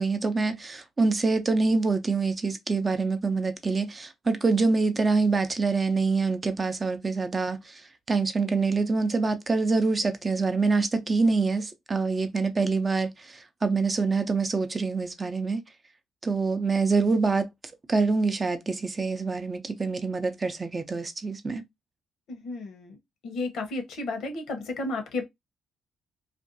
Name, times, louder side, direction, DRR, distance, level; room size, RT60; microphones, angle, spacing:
voice 1, 0.0-7.8 8.1-15.6 16.2-17.5 17.9-21.6, right 4 dB, 30° right, 0.5 m, -25 dB
voice 2, 22.3-23.0 23.2-25.3, left 2 dB, 75° left, 0.8 m, -33 dB
2.5 x 2.2 x 2.6 m
cardioid pair, 90°, 0 cm